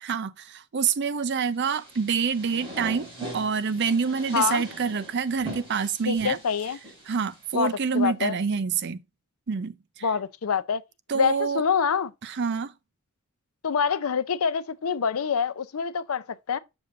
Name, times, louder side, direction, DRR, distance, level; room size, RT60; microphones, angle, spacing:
voice 1, 0.0-6.4 7.1-9.0 9.5-10.1 11.1-11.6 12.2-12.7, right 6 dB, 50° right, 0.5 m, -27 dB
sound 1, 1.6-7.7, right 2 dB, 25° right, 3.4 m, -41 dB
voice 2, 4.3-4.6 6.1-6.8 7.5-8.3 10.0-10.8 11.1-12.1 13.6-16.6, left 6 dB, 75° left, 0.5 m, -26 dB
7.0 x 6.5 x 2.6 m
head